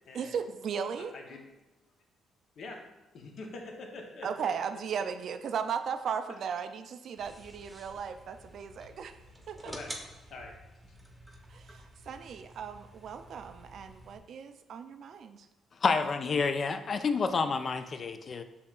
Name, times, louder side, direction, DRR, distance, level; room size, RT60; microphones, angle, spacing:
voice 1, 0.1-1.1 4.2-9.2 9.5-9.7 11.5-15.5, right 7 dB, 65° right, 8 dB, 0.3 m, -36 dB
voice 2, 1.0-1.4 2.6-2.9 3.1-4.3 9.6-10.0 10.3-10.5, left 3 dB, 65° left, 2 dB, 0.7 m, -44 dB
sound 1, 7.2-14.2, right 1 dB, 10° right, 0.8 m, -49 dB
voice 3, 15.8-18.4, left 4 dB, 45° left, 9 dB, 0.3 m, -29 dB
6.9 x 2.8 x 2.4 m, 1.1 s
cardioid pair, 90°, 0 cm